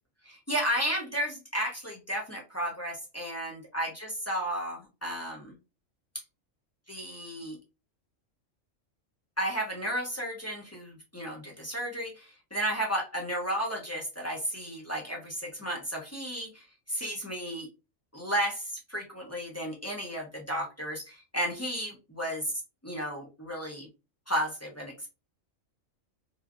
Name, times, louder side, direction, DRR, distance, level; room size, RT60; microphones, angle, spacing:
voice 1, 0.3-5.6 6.9-7.6 9.4-17.7 18.1-22.5 22.8-23.9 24.3-25.1, equal, 20° left, -2 dB, 0.4 m, -33 dB
3.0 x 2.4 x 2.4 m, 0.28 s
omnidirectional pair, 1.3 m